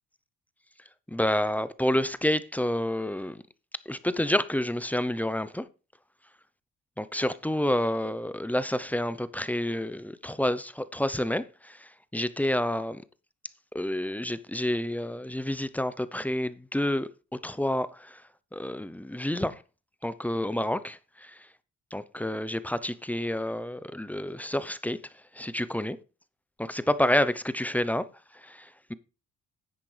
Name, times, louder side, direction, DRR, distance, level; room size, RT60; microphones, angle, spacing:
voice 1, 1.1-3.4 3.9-5.6 7.0-13.0 13.7-17.1 17.4-18.2 18.5-19.6 20.0-21.4 21.9-25.0 25.3-26.0 26.6-28.0 28.4-28.9, left 1 dB, 5° left, 0.6 m, -29 dB
10.5 x 8.2 x 3.3 m
cardioid pair, 90°, 30 cm